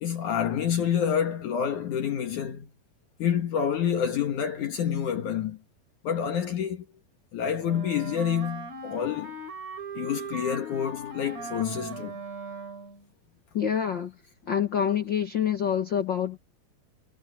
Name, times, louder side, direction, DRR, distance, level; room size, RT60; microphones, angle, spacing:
voice 1, 0.0-2.7 3.2-5.6 6.0-6.9 7.3-9.4 10.0-12.2, left 8 dB, 60° left, 2.7 m, -28 dB
Wind instrument woodwind instrument, 7.6-13.0, right 3 dB, 45° right, 5.1 m, -39 dB
voice 2, 13.5-14.1 14.5-16.4, left 8 dB, 80° left, 1.0 m, -26 dB
omnidirectional pair, 4.3 m